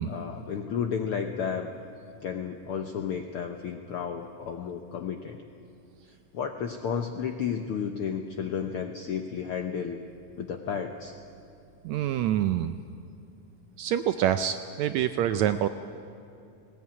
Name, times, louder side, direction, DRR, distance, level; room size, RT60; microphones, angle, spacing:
voice 1, 0.1-1.7 2.2-5.4 6.3-10.0 10.4-11.1, left 7 dB, 75° left, 6 dB, 1.3 m, -32 dB
voice 2, 11.8-12.8 13.8-15.7, right 11 dB, 80° right, 10 dB, 1.7 m, -26 dB
19.5 x 18.5 x 9.5 m, 2.6 s
omnidirectional pair, 3.7 m